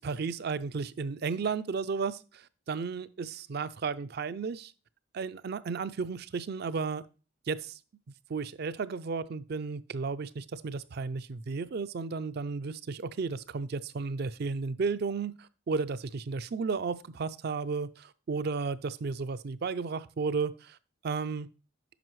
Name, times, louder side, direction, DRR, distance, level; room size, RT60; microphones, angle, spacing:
voice 1, 0.0-4.7 5.1-7.0 7.5-7.8 8.3-20.8 21.0-21.5, right 4 dB, 50° right, 0.4 m, -33 dB
9.0 x 6.0 x 3.1 m
head